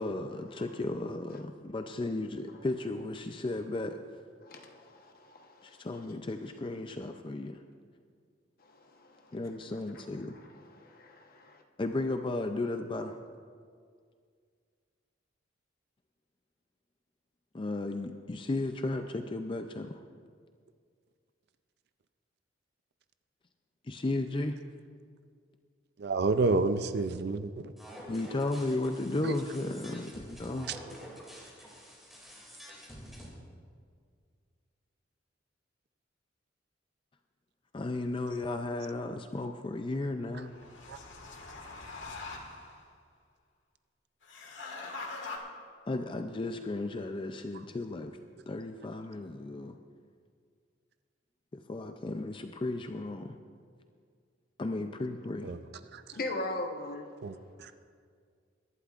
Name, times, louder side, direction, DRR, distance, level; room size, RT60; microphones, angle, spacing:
voice 1, 0.0-4.0 5.6-7.6 9.3-10.4 11.8-13.2 17.5-20.0 23.8-24.6 28.1-30.8 37.7-40.6 45.9-48.2 48.5-49.8 51.5-53.4 54.6-55.5, left 2 dB, 25° left, 6 dB, 0.4 m, -34 dB
voice 2, 4.4-5.9 8.6-9.4 9.9-10.1 10.6-11.6 56.1-57.1, left 2 dB, 50° left, 3 dB, 1.1 m, -40 dB
voice 3, 26.0-27.7 29.2-29.3 40.9-41.0 55.4-55.6 55.9-56.0 57.2-57.8, right 3 dB, 60° right, 11 dB, 0.5 m, -29 dB
sound 1, 27.8-33.3, equal, ahead, 2.5 m, -48 dB
sound 2, 40.2-42.8 44.2-45.4, left 3 dB, 80° left, 1.7 m, -43 dB
22.0 x 12.0 x 2.5 m, 2.1 s
head